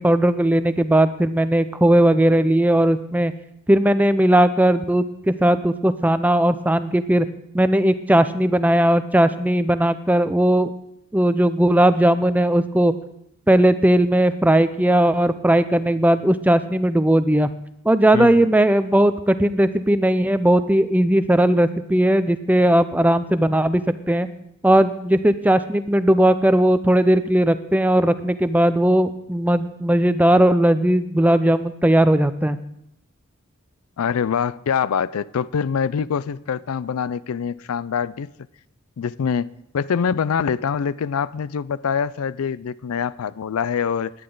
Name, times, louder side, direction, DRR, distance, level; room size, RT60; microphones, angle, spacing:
voice 1, 0.0-3.3 3.7-7.3 7.5-10.7 11.1-12.9 13.5-17.5 17.8-23.8 24.1-24.3 24.6-32.6, right 1 dB, 5° right, 12 dB, 0.4 m, -18 dB
voice 2, 18.1-18.5 34.0-38.3 39.0-44.1, left 7 dB, 85° left, 19 dB, 0.4 m, -24 dB
17.5 x 11.0 x 3.8 m, 0.76 s
head